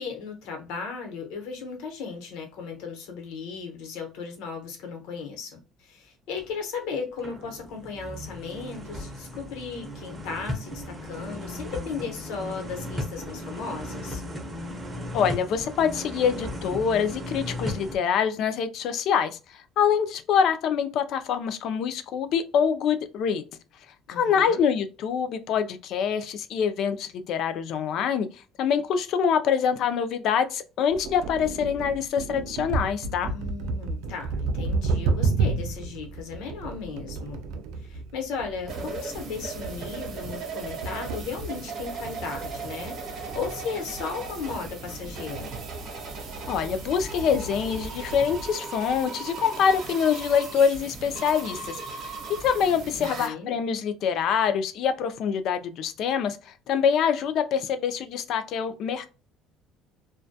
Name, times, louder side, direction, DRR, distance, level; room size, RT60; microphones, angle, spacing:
voice 1, 0.0-14.2 24.1-24.6 33.2-37.4 37.8-45.5 53.0-53.5, left 5 dB, 80° left, 0.9 m, -36 dB
sound 1, 6.4-6.5 7.0-18.0, left 1 dB, 10° right, 0.5 m, -36 dB
voice 2, 15.1-19.4 19.8-23.4 24.1-28.3 28.6-33.3 46.5-52.1 52.4-59.1, left 7 dB, 55° left, 0.3 m, -25 dB
sound 2, 30.9-48.5, right 3 dB, 85° right, 0.4 m, -32 dB
sound 3, 38.7-53.3, right 4 dB, 50° right, 0.7 m, -38 dB
2.2 x 2.1 x 2.7 m
cardioid pair, 160°, 0 cm